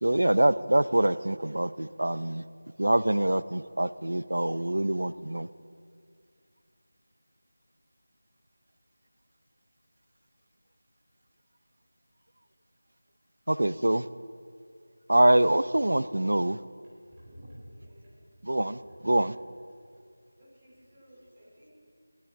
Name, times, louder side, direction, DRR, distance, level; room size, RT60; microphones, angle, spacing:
voice 1, 0.0-2.4 2.8-5.5 13.5-14.0 15.1-16.6 18.4-19.4, right 1 dB, 85° right, 16 dB, 0.5 m, -25 dB
voice 2, 17.0-18.1 20.4-21.7, equal, 15° right, -9 dB, 3.1 m, -51 dB
18.0 x 13.5 x 3.7 m, 2.3 s
figure-of-eight pair, 175°, 0 cm